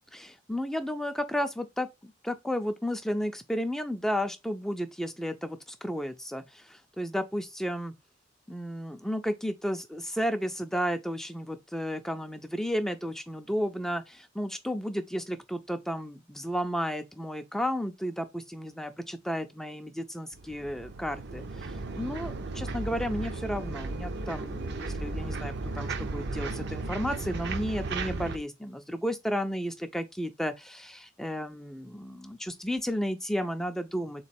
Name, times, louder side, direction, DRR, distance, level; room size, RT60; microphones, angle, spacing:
voice 1, 0.1-7.9 8.5-34.2, equal, ahead, 0.4 m, -33 dB
sound 1, 20.3-28.4, right 3 dB, 60° right, 0.6 m, -35 dB
3.6 x 3.0 x 4.1 m
head